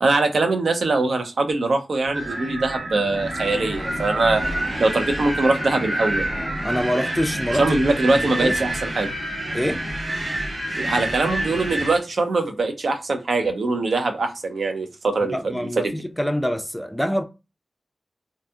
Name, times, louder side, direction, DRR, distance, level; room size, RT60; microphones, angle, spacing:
voice 1, 0.0-4.4 4.8-6.3 7.6-9.1 10.7-16.0, right 3 dB, 85° right, 0.4 m, -22 dB
Wind, 2.1-12.0, right 1 dB, 65° right, 1.3 m, -27 dB
voice 2, 6.6-7.8 8.1-8.6 9.5-9.8 15.3-15.9 16.2-17.2, equal, 5° left, 0.3 m, -25 dB
2.6 x 2.6 x 2.3 m
wide cardioid pair, 95°, 0 cm